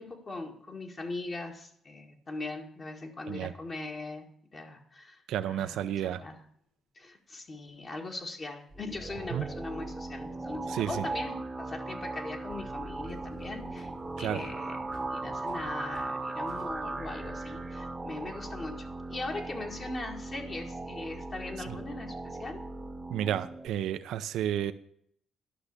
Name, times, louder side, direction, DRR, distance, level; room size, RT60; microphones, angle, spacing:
voice 1, 0.0-4.2 4.5-5.2 5.5-6.3 7.0-13.9 14.2-14.8 15.1-22.6, left 2 dB, 40° left, 1 dB, 2.0 m, -40 dB
voice 2, 5.3-6.2 9.3-9.5 10.7-11.0 14.2-14.4 23.1-24.7, right 10 dB, 85° right, 11 dB, 0.6 m, -31 dB
sound 1, 7.7-8.9 11.2-12.1 12.5-16.7, left 3 dB, 80° left, 4.1 m, -55 dB
sound 2, 8.7-23.7, right 2 dB, 20° right, 1.0 m, -38 dB
12.0 x 6.0 x 6.7 m, 0.67 s
cardioid pair, 90°, 0 cm